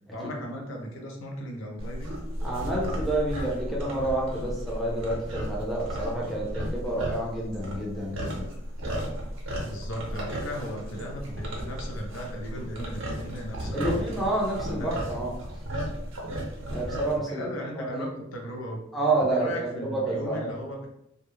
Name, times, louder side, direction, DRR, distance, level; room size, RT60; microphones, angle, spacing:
voice 1, 0.1-2.2 9.6-14.0 14.6-15.0 17.2-18.8 19.2-20.9, equal, 90° left, 0 dB, 0.6 m, -37 dB
sound 1, 1.8-17.2, equal, 85° right, 0.7 m, -34 dB
voice 2, 2.4-8.5 13.7-15.3 16.7-17.5 17.7-18.1 18.9-20.5, right 2 dB, ahead, -5 dB, 0.6 m, -29 dB
2.4 x 2.0 x 3.0 m, 0.81 s
head